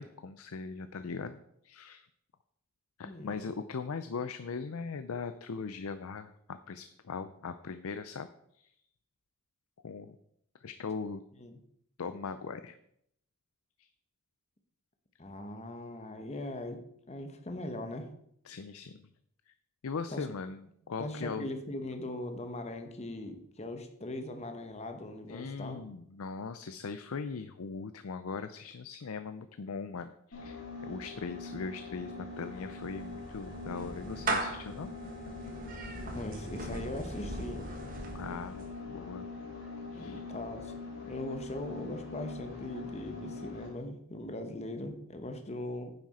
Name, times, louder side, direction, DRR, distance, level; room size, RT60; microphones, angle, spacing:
voice 1, 0.0-2.1 3.0-8.7 9.8-10.2 10.6-11.2 12.0-12.8 13.8-13.9 18.4-19.1 19.5-19.6 19.8-21.5 25.3-34.9 38.1-39.3 39.9-40.2, left 5 dB, 75° left, 11 dB, 0.5 m, -40 dB
voice 2, 3.0-3.4 11.4-11.6 15.2-18.1 20.1-20.3 21.0-25.8 36.1-37.7 39.9-40.7 41.1-45.9, left 1 dB, 30° left, 6 dB, 1.0 m, -40 dB
sound 1, 30.3-43.8, left 3 dB, 55° left, 3.9 m, -43 dB
Clapping / Meow, 32.4-38.8, right 2 dB, 40° right, 1.3 m, -39 dB
9.7 x 7.5 x 4.2 m, 0.72 s
head